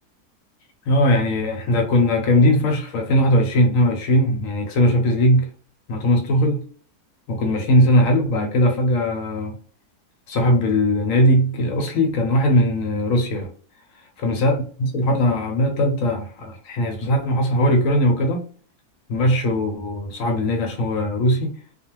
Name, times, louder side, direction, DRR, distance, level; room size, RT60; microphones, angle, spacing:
voice 1, 0.9-5.5 5.9-6.6 7.3-9.5 10.3-13.5 14.2-18.5 19.1-21.5, left 1 dB, 65° left, 0.9 m, -19 dB
2.4 x 2.3 x 2.9 m
omnidirectional pair, 1.7 m